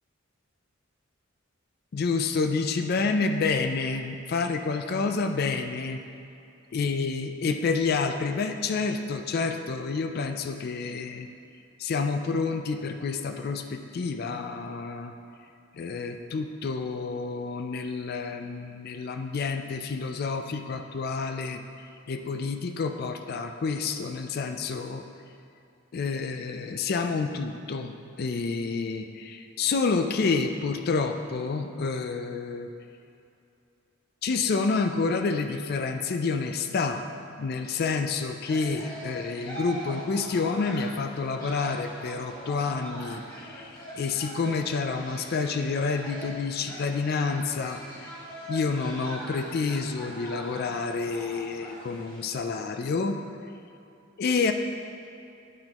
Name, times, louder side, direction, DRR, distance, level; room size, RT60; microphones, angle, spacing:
voice 1, 1.9-6.0 6.7-11.3 11.8-15.1 15.7-21.6 22.1-25.0 25.9-32.7 34.2-37.0 37.3-48.1 48.5-53.2 54.2-54.5, left 4 dB, 50° left, 6 dB, 0.4 m, -29 dB
sound 1, 38.4-52.3, equal, 20° left, 1.3 m, -42 dB
11.0 x 3.8 x 2.9 m, 2.7 s
head